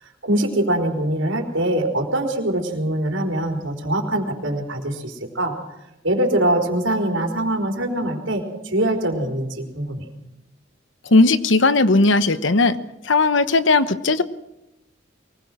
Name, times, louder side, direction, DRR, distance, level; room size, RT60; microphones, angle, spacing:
voice 1, 0.2-5.5 6.0-10.0, right 1 dB, 85° right, 2 dB, 4.3 m, -23 dB
voice 2, 11.1-12.8 13.0-14.2, left 3 dB, 75° left, 13 dB, 1.1 m, -17 dB
23.5 x 20.0 x 6.2 m, 0.91 s
head